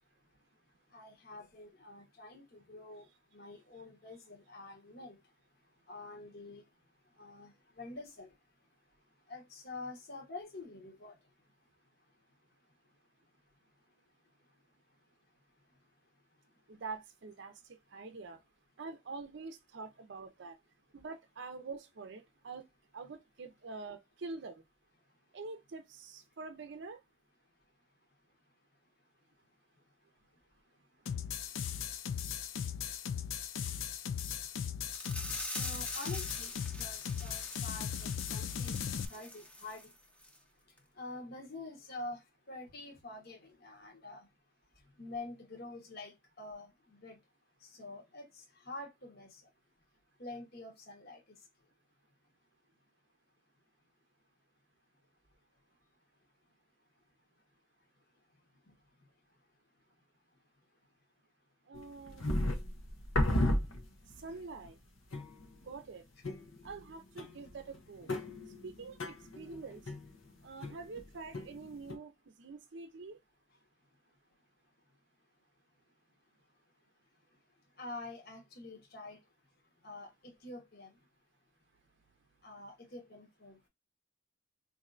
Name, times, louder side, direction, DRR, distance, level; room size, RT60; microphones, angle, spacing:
voice 1, 0.9-3.0 3.3-5.2 5.9-6.6 7.2-8.3 9.3-11.2 32.8-33.0 35.5-38.8 39.1-39.9 41.0-44.3 45.0-47.2 47.6-49.4 50.2-51.2 58.7-58.8 64.2-64.4 77.8-79.2 79.8-81.0 82.4-83.7, left 2 dB, 50° left, 1.0 m, -47 dB
voice 2, 16.7-18.4 18.8-20.6 20.9-22.6 22.9-24.6 25.3-27.0 61.7-62.3 64.2-64.8 65.6-66.0 66.6-68.1 68.6-69.9 70.4-73.2, right 4 dB, 60° right, 0.5 m, -46 dB
sound 1, 31.1-39.1, left 8 dB, 70° left, 0.4 m, -38 dB
sound 2, 34.9-39.9 40.2-40.4 40.8-40.9, equal, 5° left, 0.7 m, -45 dB
sound 3, 61.7-64.3 64.6-64.7 65.1-65.6 66.2-66.9 67.2-71.0 71.3-71.9, left 1 dB, 85° left, 0.8 m, -34 dB
4.3 x 2.6 x 2.4 m
head